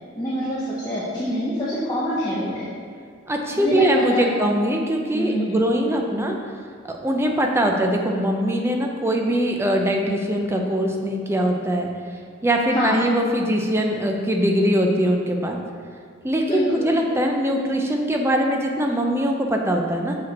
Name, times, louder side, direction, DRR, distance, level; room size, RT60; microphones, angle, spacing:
voice 1, 0.1-2.7 3.5-4.3 5.1-5.7 12.7-13.0 16.5-16.9, equal, 20° left, -9 dB, 0.8 m, -26 dB
voice 2, 3.3-6.3 6.8-11.9 12.4-15.6 16.2-20.2, equal, 10° right, 2 dB, 0.5 m, -22 dB
6.2 x 5.0 x 4.1 m, 2.1 s
head